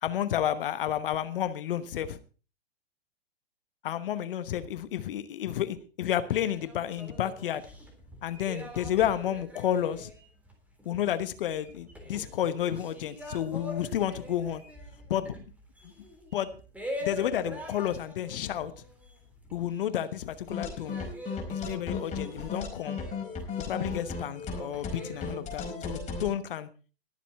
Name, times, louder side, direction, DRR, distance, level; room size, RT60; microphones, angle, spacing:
voice 1, 0.0-2.2 3.8-7.6 8.2-10.1 10.8-14.6 15.1-15.3 16.3-16.5 17.0-18.7 19.5-21.1 21.5-23.0 23.7-26.7, left 10 dB, 60° left, 12 dB, 1.1 m, -31 dB
sound 1, 6.3-20.0 20.3-25.4, left 1 dB, 5° right, 3.5 m, -44 dB
sound 2, 20.5-26.3, left 5 dB, 20° left, 4.9 m, -35 dB
21.0 x 7.4 x 4.2 m, 0.35 s
figure-of-eight pair, 100°, 31 cm